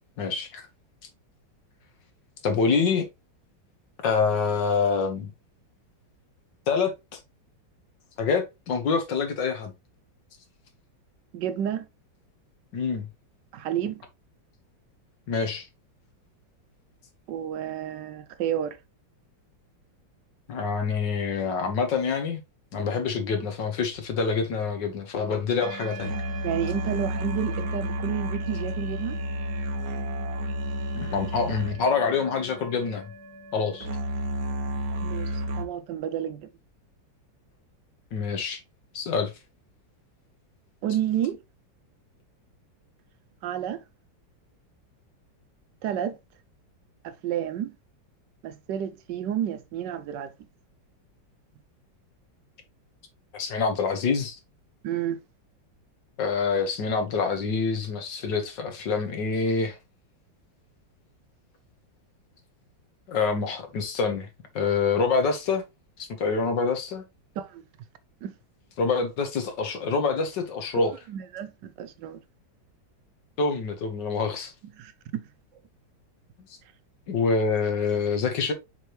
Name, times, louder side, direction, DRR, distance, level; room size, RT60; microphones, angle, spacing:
voice 1, 0.2-0.7 2.4-3.1 4.0-5.3 6.7-6.9 8.2-9.7 12.7-13.1 15.3-15.7 20.5-22.4 22.7-26.1 30.9-33.1 33.5-33.9 38.1-38.6 38.9-39.3 53.3-54.4 56.2-59.8 63.1-64.3 64.6-65.7 66.0-67.0 68.8-70.9 73.4-74.5 77.1-78.5, left 5 dB, 70° left, 1.9 m, -26 dB
voice 2, 11.3-11.9 13.5-14.0 17.3-18.8 26.4-29.2 35.0-36.5 40.8-41.4 43.4-43.8 45.8-46.2 47.0-47.7 48.4-50.3 54.8-55.2 67.4-67.6 68.2-68.3 70.7-72.2 74.8-75.3, right 9 dB, 75° right, 1.2 m, -30 dB
sound 1, 24.0-24.1 25.6-35.6, right 1 dB, 55° right, 1.4 m, -32 dB
6.6 x 4.8 x 3.0 m
omnidirectional pair, 2.1 m